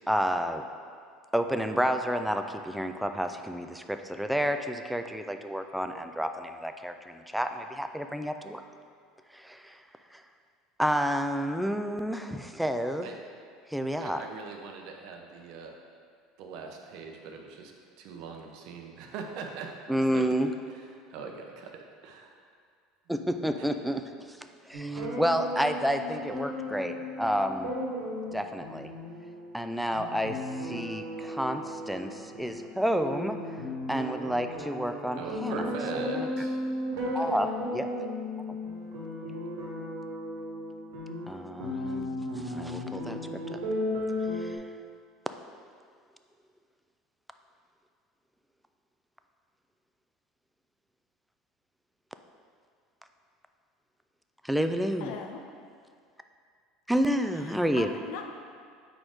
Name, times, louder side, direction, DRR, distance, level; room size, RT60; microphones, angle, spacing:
voice 1, 0.1-0.6 1.3-8.6 9.3-9.8 10.1-10.2 10.8-13.1 13.7-14.3 19.9-20.5 23.1-24.0 24.3-24.4 24.7-27.7 28.3-28.9 29.5-33.4 33.9-35.6 35.9-36.3 37.1-37.9 41.3-43.2 43.5-43.6 44.3-44.6 54.4-55.1 56.9-57.9, equal, ahead, 7 dB, 0.3 m, -30 dB
voice 2, 14.0-15.8 16.4-17.7 18.0-19.7 20.1-20.2 20.7-22.3 23.6-23.9 35.1-36.6 36.9-37.4, right 5 dB, 65° right, 2 dB, 0.7 m, -41 dB
sound 1, 24.7-44.6, left 1 dB, 85° right, 1.4 m, -35 dB
voice 3, 55.0-55.4 57.3-58.3, left 6 dB, 70° left, 4 dB, 0.6 m, -40 dB
4.5 x 4.3 x 5.0 m, 2.2 s
supercardioid pair, 120°, 0 cm